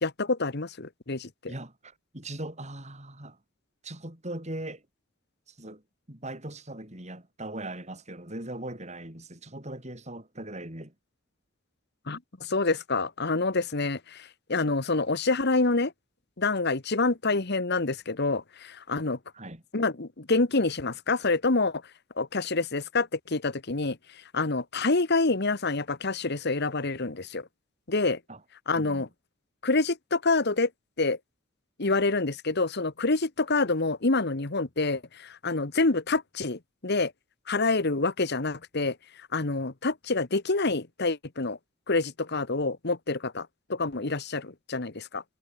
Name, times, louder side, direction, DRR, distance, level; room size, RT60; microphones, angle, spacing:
voice 1, 0.0-1.5 12.1-15.9 16.4-19.2 19.7-21.8 22.2-24.0 24.3-27.5 27.9-28.2 28.7-29.1 29.6-30.7 31.0-31.2 31.8-37.1 37.5-38.9 39.3-41.6 41.9-45.2, left 3 dB, 55° left, 1.4 m, -27 dB
voice 2, 1.5-3.4 3.8-4.8 5.5-5.8 6.1-10.9 19.3-19.6 28.3-28.4 28.7-29.1, right 1 dB, 35° right, 6.5 m, -39 dB
head